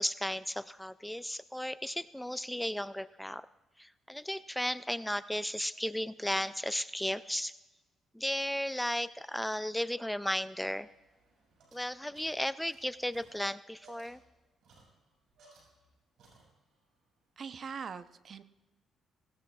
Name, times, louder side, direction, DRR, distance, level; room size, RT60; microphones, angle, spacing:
voice 1, 0.0-3.5 3.8-7.5 8.1-10.9 11.7-14.2, left 1 dB, 5° left, 15 dB, 0.3 m, -35 dB
sound 1, 10.8-15.9 16.2-16.9, right 3 dB, 75° right, 6.0 m, -63 dB
voice 2, 17.4-18.4, right 6 dB, 50° right, 12 dB, 0.7 m, -42 dB
19.0 x 18.0 x 2.4 m, 1.1 s
cardioid pair, 90°, 0 cm